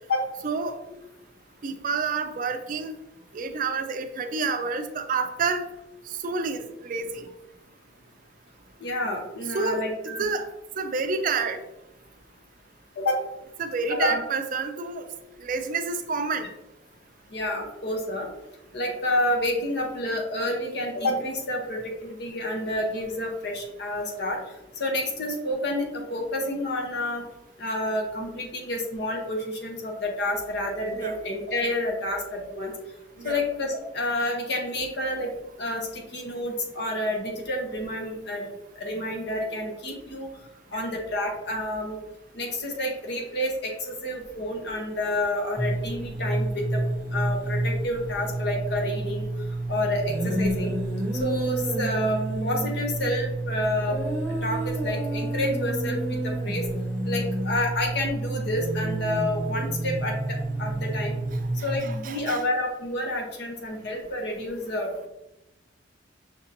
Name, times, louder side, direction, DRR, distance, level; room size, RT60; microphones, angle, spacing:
voice 1, 0.4-0.8 1.6-2.9 3.3-5.6 6.2-7.3 9.5-9.8 10.2-10.5 10.8-11.6 13.6-15.1 15.4-16.5 30.9-31.1 33.2-33.4 40.7-40.8 61.8-62.4, right 4 dB, 45° right, 7 dB, 0.4 m, -28 dB
voice 2, 8.8-10.3 13.0-13.2 13.9-14.2 17.3-18.3 18.7-24.4 24.8-27.2 27.6-32.7 33.2-35.3 35.6-40.3 40.7-42.0 42.3-46.8 47.1-49.3 49.7-50.7 51.2-54.0 54.4-56.7 57.1-61.1 61.6-64.9, left 1 dB, 60° left, 1 dB, 0.8 m, -29 dB
sound 1, 45.5-61.8, right 1 dB, 10° left, 1.2 m, -29 dB
5.9 x 2.8 x 2.6 m, 0.92 s
head